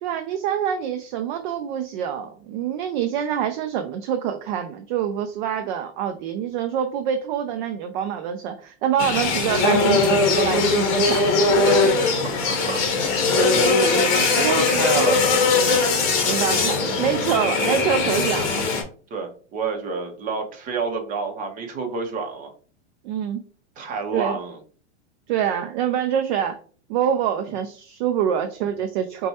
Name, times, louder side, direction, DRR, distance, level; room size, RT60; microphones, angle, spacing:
voice 1, 0.0-11.3 14.4-14.7 16.2-18.6 23.0-23.4 24.1-24.4 25.3-26.6 26.9-29.3, right 9 dB, 45° right, 6 dB, 0.4 m, -25 dB
sound 1, 9.0-18.8, left 3 dB, 45° left, 1.0 m, -20 dB
voice 2, 12.2-13.1 14.3-15.4 19.1-22.5 23.8-24.6, right 4 dB, 25° right, 3 dB, 0.7 m, -29 dB
4.2 x 2.2 x 2.8 m, 0.43 s
supercardioid pair, 140°, 36 cm